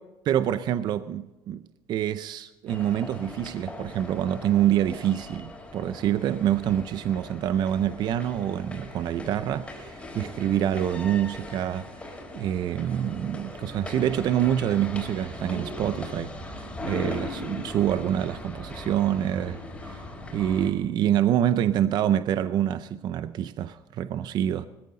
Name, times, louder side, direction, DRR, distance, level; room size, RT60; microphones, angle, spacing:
voice 1, 0.3-1.6 1.9-20.0 20.3-24.7, right 10 dB, 50° right, 0.6 m, -26 dB
sound 1, 2.7-20.7, left 2 dB, 10° left, 3.8 m, -39 dB
20.0 x 14.0 x 3.8 m
cardioid pair, 140°, 9 cm